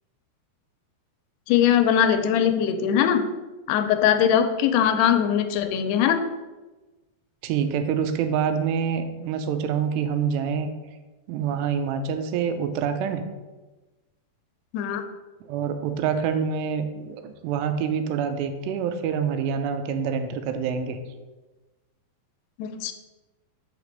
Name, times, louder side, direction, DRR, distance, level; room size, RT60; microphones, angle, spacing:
voice 1, 1.5-3.2 3.7-6.2 14.7-15.0 22.6-22.9, left 9 dB, 85° left, 7 dB, 2.6 m, -21 dB
voice 2, 7.4-10.7 11.3-13.2 15.5-21.0, right 7 dB, 85° right, 8 dB, 2.8 m, -26 dB
5.9 x 4.9 x 6.6 m, 1.2 s
omnidirectional pair, 4.8 m